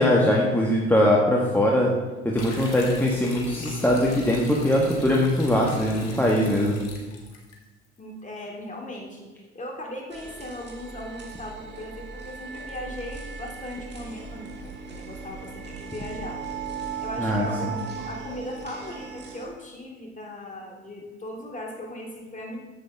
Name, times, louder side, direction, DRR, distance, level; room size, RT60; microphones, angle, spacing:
voice 1, 0.0-1.9 2.2-6.8 17.2-17.8, left 1 dB, 5° left, -3 dB, 1.3 m, -21 dB
sound 1, 2.3-7.6, left 4 dB, 75° left, 1.8 m, -39 dB
voice 2, 8.0-9.3 9.5-16.4 17.0-17.7 18.0-22.6, left 1 dB, 20° left, 0 dB, 2.3 m, -38 dB
sound 2, 10.1-19.5, right 6 dB, 30° right, 1.9 m, -37 dB
10.0 x 7.8 x 3.4 m, 1.2 s
hypercardioid pair, 70°, 35 cm